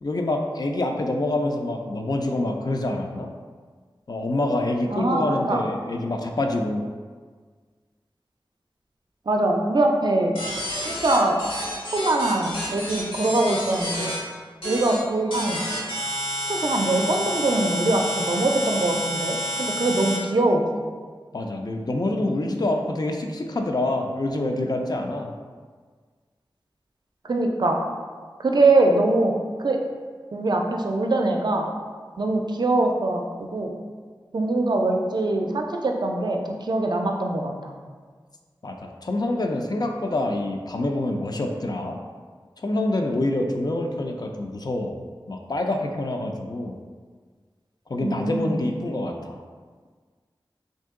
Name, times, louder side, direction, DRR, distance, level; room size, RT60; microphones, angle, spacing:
voice 1, 0.0-3.3 4.1-6.8 21.3-25.3 38.6-42.0 42.6-45.0 45.3-46.8 47.9-49.4, left 2 dB, 50° left, 2 dB, 0.4 m, -26 dB
voice 2, 4.9-5.2 5.5-5.6 9.3-10.4 10.8-11.4 11.9-14.2 14.6-15.6 16.5-20.9 27.2-27.8 28.4-29.8 30.3-31.7 32.2-33.2 33.5-33.7 34.3-37.7 48.0-48.6, right 2 dB, 55° right, 2 dB, 0.4 m, -23 dB
sound 1, 10.4-14.2 14.6-15.0 15.3-20.2, equal, 85° left, 1.1 m, -30 dB
2.8 x 2.7 x 3.5 m, 1.6 s
wide cardioid pair, 50°, 9 cm